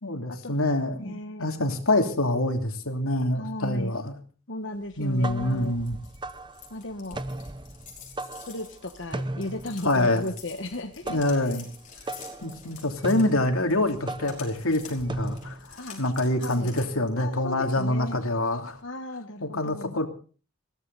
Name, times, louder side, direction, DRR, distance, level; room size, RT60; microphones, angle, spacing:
voice 1, 0.0-1.1 1.4-4.1 5.0-6.0 9.8-10.3 11.1-11.7 12.4-18.8 19.4-20.1, left 1 dB, 90° left, 4 dB, 2.9 m, -26 dB
voice 2, 1.0-1.5 3.4-4.0 4.5-5.8 6.7-7.2 8.5-11.7 15.8-16.0 16.4-16.7 17.2-18.2 18.8-20.0, left 1 dB, 60° left, 4 dB, 1.4 m, -36 dB
sound 1, 4.9-15.7, right 2 dB, 20° right, 0.8 m, -37 dB
sound 2, 5.4-18.8, left 7 dB, 35° left, 5.3 m, -49 dB
21.0 x 16.0 x 4.0 m, 0.40 s
head